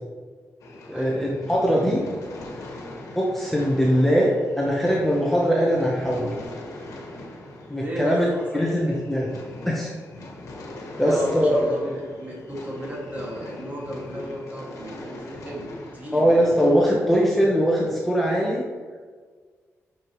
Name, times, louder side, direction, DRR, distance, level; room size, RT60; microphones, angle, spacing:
sound 1, 0.6-16.9, left 2 dB, 80° left, 1.3 m, -41 dB
voice 1, 0.9-2.0 3.1-6.3 7.7-8.3 8.5-9.3 9.7-9.9 11.0-11.6 16.1-18.6, equal, 5° left, -4 dB, 0.9 m, -21 dB
voice 2, 7.8-9.0 11.0-16.4, equal, 30° right, -4 dB, 2.0 m, -34 dB
8.9 x 5.4 x 3.1 m, 1.5 s
wide cardioid pair, 145°, 5 cm